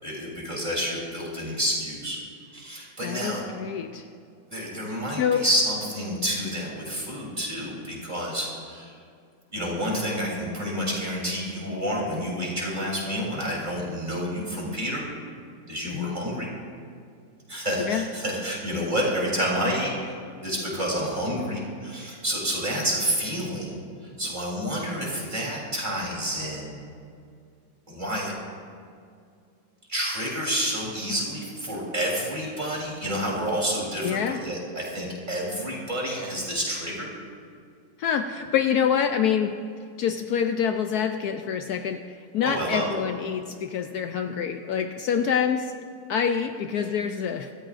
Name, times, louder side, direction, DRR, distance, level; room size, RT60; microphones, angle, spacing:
voice 1, 0.0-2.2 2.5-3.4 4.5-8.9 9.5-15.0 15.7-16.5 17.5-20.1 20.4-23.8 24.2-26.7 27.9-28.3 29.9-37.1 42.4-42.8, equal, 25° right, -4 dB, 3.6 m, -29 dB
voice 2, 3.0-4.1 5.2-5.4 15.8-16.2 17.8-18.1 34.0-34.4 38.0-39.6 40.0-45.7 46.1-47.5, left 8 dB, 70° left, 6 dB, 1.0 m, -26 dB
25.0 x 13.5 x 2.6 m, 2.3 s
omnidirectional pair, 1.8 m